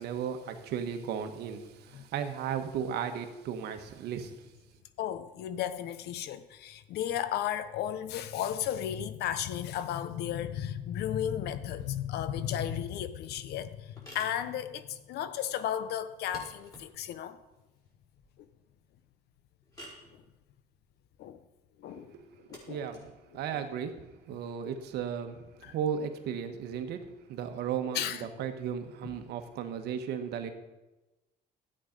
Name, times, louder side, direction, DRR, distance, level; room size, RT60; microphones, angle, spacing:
voice 1, 0.0-4.3 22.0-30.5, right 8 dB, 75° right, 1.4 m, -35 dB
voice 2, 5.0-17.4 21.2-21.4 21.8-22.1 22.5-22.8 23.5-23.6 25.6-25.7 27.9-28.3, left 10 dB, 75° left, 0.8 m, -34 dB
sound 1, 13.8-25.0, equal, 20° left, 4.9 m, -55 dB
13.0 x 8.8 x 5.2 m
cardioid pair, 110°, 17 cm